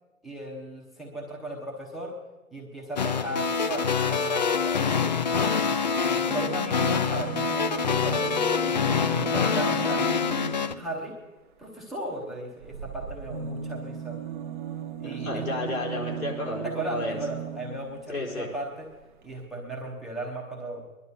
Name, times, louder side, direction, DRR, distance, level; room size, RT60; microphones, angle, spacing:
voice 1, 0.2-2.1 2.5-5.2 6.0-8.2 8.7-11.2 11.6-14.2 15.0-15.4 16.6-18.9 19.2-20.8, right 1 dB, ahead, -2 dB, 0.8 m, -36 dB
sound 1, 3.0-10.7, left 6 dB, 35° left, 0.5 m, -25 dB
sound 2, 6.1-10.9 12.6-18.1 19.0-19.1 19.3-19.4, right 6 dB, 35° right, 0.9 m, -37 dB
voice 2, 15.0-17.2 18.1-18.5, left 2 dB, 80° left, -2 dB, 5.0 m, -32 dB
20.5 x 11.5 x 5.5 m, 1.2 s
figure-of-eight pair, 140°, 41 cm